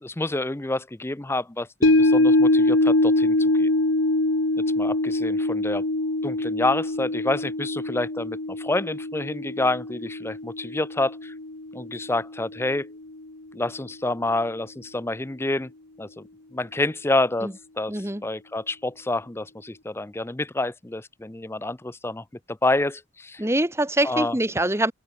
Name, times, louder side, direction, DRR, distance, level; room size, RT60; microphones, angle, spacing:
voice 1, 0.0-3.7 4.8-5.8 6.2-11.3 11.7-12.9 13.5-15.7 16.0-16.2 16.5-23.4 24.0-24.4, left 2 dB, 10° left, 0.5 m, -28 dB
sound 1, 1.8-12.2 12.6-12.7, left 2 dB, 65° left, 1.6 m, -23 dB
voice 2, 17.9-18.2 23.4-24.9, right 1 dB, 10° right, 1.5 m, -24 dB
open air
head